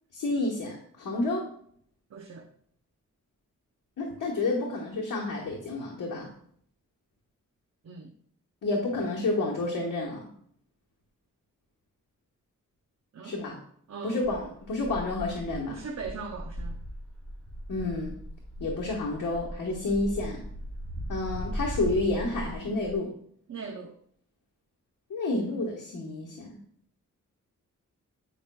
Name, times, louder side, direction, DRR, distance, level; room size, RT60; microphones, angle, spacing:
voice 1, 0.1-1.5 4.0-6.3 8.6-10.2 13.2-13.6 14.0-15.8 17.7-18.1 18.6-20.4 21.1-23.1 25.1-26.6, left 2 dB, 80° left, -3 dB, 1.2 m, -30 dB
voice 2, 2.1-2.5 7.8-8.1 13.1-13.4 13.9-14.3 15.7-16.8 23.5-24.0, right 5 dB, 55° right, 4 dB, 0.7 m, -40 dB
sound 1, 14.2-22.9, equal, 5° left, 2.5 m, -38 dB
8.7 x 5.0 x 2.2 m, 0.63 s
cardioid pair, 65°, 31 cm